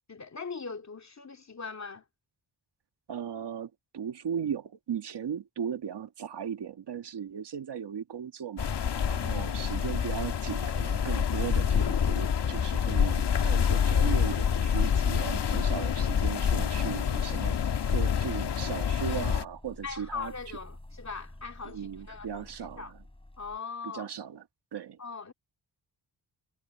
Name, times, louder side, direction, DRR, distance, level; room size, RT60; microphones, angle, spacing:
voice 1, 0.1-2.0 9.2-9.5 19.1-19.2 19.8-22.9 23.4-24.1 25.0-25.3, left 5 dB, 40° left, 2.7 m, -40 dB
voice 2, 3.1-8.7 9.1-17.6 17.9-20.3 21.6-22.8 23.8-24.4 24.7-25.0, right 8 dB, 65° right, 1.8 m, -37 dB
sound 1, 8.6-19.5, left 7 dB, 65° left, 1.8 m, -27 dB
sound 2, 17.2-23.6, left 1 dB, 10° left, 6.1 m, -50 dB
cardioid pair, 85°, 43 cm